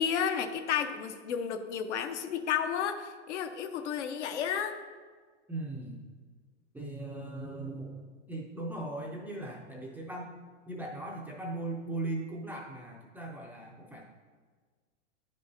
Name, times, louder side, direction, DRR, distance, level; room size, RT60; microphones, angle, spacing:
voice 1, 0.0-4.8, left 8 dB, 70° left, 7 dB, 0.7 m, -32 dB
voice 2, 5.5-6.1 6.7-10.4 10.7-14.1, right 2 dB, 5° right, -3 dB, 0.4 m, -39 dB
9.5 x 5.4 x 2.7 m, 1.5 s
hypercardioid pair, 125°, 36 cm